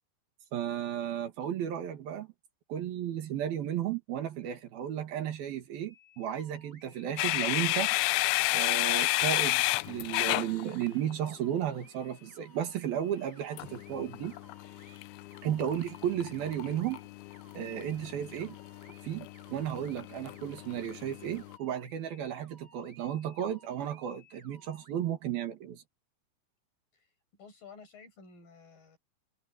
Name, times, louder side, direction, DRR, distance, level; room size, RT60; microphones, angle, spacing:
voice 1, 0.5-2.3 2.7-7.9 8.5-14.3 15.4-17.0 17.5-18.6 19.0-25.8, right 10 dB, 60° right, 3.3 m, -34 dB
sound 1, 5.8-24.9, equal, 20° right, 3.2 m, -60 dB
sound 2, 7.2-11.2 13.6-21.6, left 20 dB, 90° left, 3.0 m, -32 dB
voice 2, 26.9-29.0, left 5 dB, 45° left, 9.2 m, -53 dB
omnidirectional pair, 5.4 m